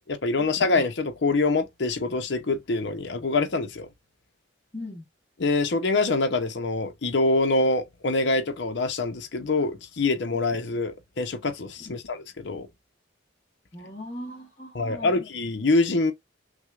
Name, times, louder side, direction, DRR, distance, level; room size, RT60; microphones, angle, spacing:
voice 1, 0.1-3.9 5.4-12.7 14.7-16.1, left 3 dB, 65° left, 0.7 m, -25 dB
voice 2, 4.7-5.1 11.8-11.9 13.7-15.2, left 1 dB, 30° left, 1.1 m, -39 dB
6.0 x 2.1 x 2.4 m
head